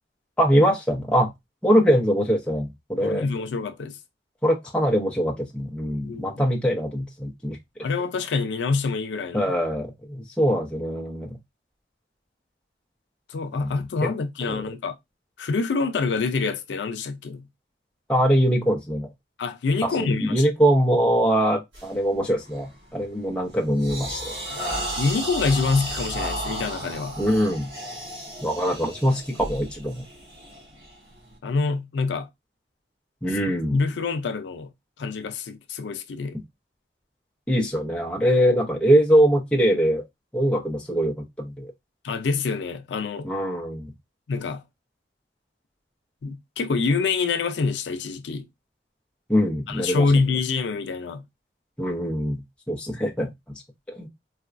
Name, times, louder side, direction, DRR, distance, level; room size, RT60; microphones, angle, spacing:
voice 1, 0.4-1.3 1.6-3.2 4.4-7.6 9.3-11.4 13.6-13.7 14.0-14.1 14.5-14.6 18.1-19.1 19.8-24.4 27.2-27.7 28.4-30.0 33.2-33.8 37.5-40.0 40.3-41.7 43.2-43.9 49.3-50.2 51.8-52.4 52.7-53.3 53.9-54.1, equal, 5° left, 0.8 m, -22 dB
voice 2, 3.0-4.0 6.0-6.5 7.8-9.5 13.3-15.0 15.4-17.5 19.4-20.4 24.5-24.6 25.0-27.2 31.4-32.3 33.3-33.4 33.7-34.7 35.0-36.4 42.0-43.3 44.3-44.6 46.2-48.5 49.7-51.2, left 4 dB, 85° left, 0.4 m, -26 dB
sound 1, 21.7-22.0 22.5-22.8 23.2-31.3, right 1 dB, 70° right, 1.5 m, -34 dB
4.1 x 2.2 x 2.4 m
head